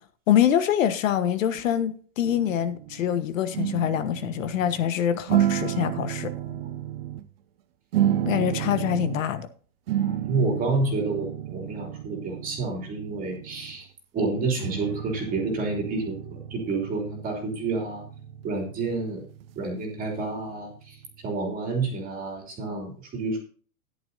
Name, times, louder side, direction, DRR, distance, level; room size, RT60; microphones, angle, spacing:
voice 1, 0.3-6.3 8.3-9.5, left 10 dB, 55° left, 1.3 m, -25 dB
sound 1, 2.2-3.2 3.5-4.9 5.3-7.3 7.9-9.3 9.9-13.8 14.6-21.0, right 11 dB, 40° right, 0.7 m, -31 dB
voice 2, 6.3-6.7 9.9-13.9 14.1-18.0 18.4-19.2 19.6-21.0 21.2-23.4, right 3 dB, 20° right, 3.0 m, -29 dB
13.5 x 11.0 x 2.7 m
hypercardioid pair, 155°, 46 cm